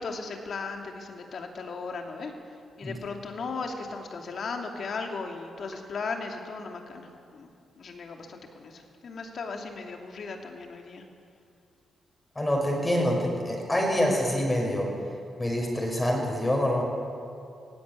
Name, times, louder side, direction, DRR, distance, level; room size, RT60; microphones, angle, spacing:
voice 1, 0.0-2.3 2.8-7.5 7.8-11.0, left 4 dB, 60° left, 3 dB, 2.7 m, -37 dB
voice 2, 12.4-14.9 15.4-16.8, equal, 15° left, 0 dB, 5.7 m, -26 dB
17.0 x 16.0 x 9.8 m, 2.5 s
cardioid pair, 85°, 0 cm